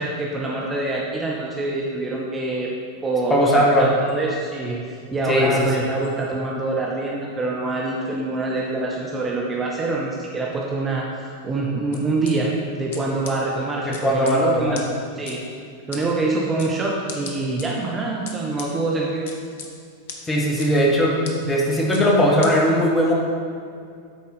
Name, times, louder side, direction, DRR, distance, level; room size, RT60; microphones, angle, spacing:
voice 1, 0.0-2.7 3.0-11.1 11.4-14.8 15.2-15.4 15.9-19.3, right 2 dB, 20° right, -3 dB, 0.8 m, -25 dB
voice 2, 3.3-3.9 5.3-5.5 13.8-14.8 20.2-21.2 21.4-23.1, equal, 15° left, -3 dB, 1.5 m, -18 dB
sound 1, 11.9-12.3 12.9-13.0 13.2-13.3 13.9-14.3 14.7-14.8 15.3-15.4 15.9-16.0 16.6-16.7 17.1-17.7 18.3-18.7 19.3-19.7 20.1-20.2 20.6-20.7 21.2-21.3 21.9-22.0 22.4-22.5, left 5 dB, 55° left, 1.0 m, -35 dB
8.4 x 4.1 x 5.6 m, 2.3 s
figure-of-eight pair, 90°, 0 cm